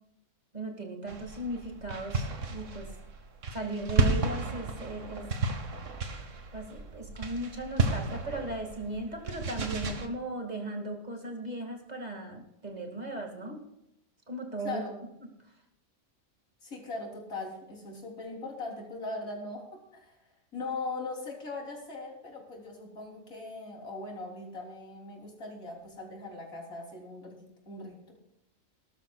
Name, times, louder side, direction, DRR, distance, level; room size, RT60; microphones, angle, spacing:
voice 1, 0.5-2.9 3.5-5.3 6.5-13.6 14.3-14.8, right 2 dB, 30° right, 2 dB, 2.3 m, -37 dB
sound 1, 1.1-10.1, right 3 dB, 65° right, 1.7 m, -32 dB
voice 2, 14.6-15.0 16.6-20.2 20.5-28.1, left 3 dB, 90° left, 0 dB, 3.9 m, -40 dB
19.5 x 12.5 x 2.4 m, 0.84 s
omnidirectional pair, 1.4 m